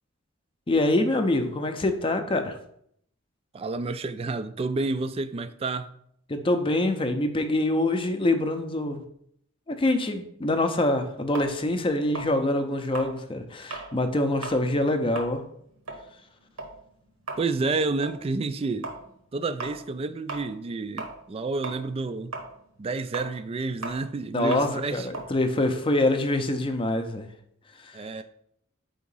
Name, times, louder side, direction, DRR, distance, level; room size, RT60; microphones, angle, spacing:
voice 1, 0.7-2.6 6.3-9.0 9.7-15.4 24.3-27.3, left 1 dB, 25° left, 0.5 m, -25 dB
voice 2, 3.5-5.9 17.4-18.9 19.3-22.3 22.8-25.1 27.9-28.2, right 3 dB, 30° right, 0.3 m, -30 dB
sound 1, 11.3-14.0 14.3-14.7 15.0-21.4 21.6-26.4, right 3 dB, 90° right, 1.2 m, -38 dB
4.8 x 3.6 x 5.4 m
head